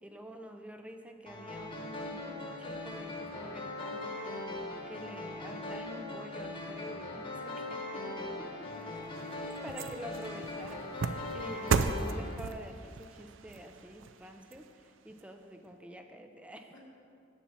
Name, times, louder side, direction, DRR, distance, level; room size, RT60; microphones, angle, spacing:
voice 1, 0.0-7.9 9.2-16.9, right 1 dB, 5° right, 5 dB, 0.4 m, -48 dB
sound 1, 1.3-12.3, left 2 dB, 25° left, 1.1 m, -40 dB
voice 2, 7.9-9.2 16.7-16.9, left 1 dB, 80° left, -2 dB, 2.0 m, -52 dB
sound 2, 8.7-15.2 15.7-15.8, right 5 dB, 70° right, 0.4 m, -36 dB
7.4 x 7.1 x 7.0 m, 2.4 s
head